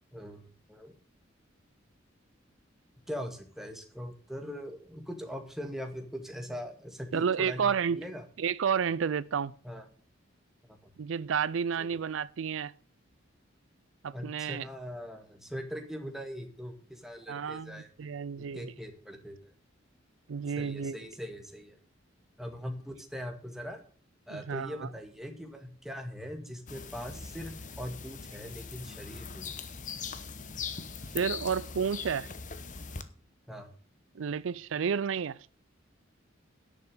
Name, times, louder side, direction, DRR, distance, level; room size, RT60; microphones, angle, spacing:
voice 1, 0.1-0.9 3.1-8.2 9.6-9.9 10.7-10.9 11.8-12.0 14.1-17.9 18.4-19.5 20.6-21.8 22.4-23.8 24.3-29.5 33.5-33.7, equal, ahead, 1.9 m, -41 dB
voice 2, 7.1-8.0 8.4-9.5 11.0-12.7 14.0-14.7 17.3-18.7 20.3-21.0 24.3-24.9 31.1-32.3 34.2-35.4, right 7 dB, 85° right, 0.4 m, -31 dB
sound 1, 26.7-33.0, left 5 dB, 40° left, 1.0 m, -41 dB
11.0 x 6.7 x 6.8 m
head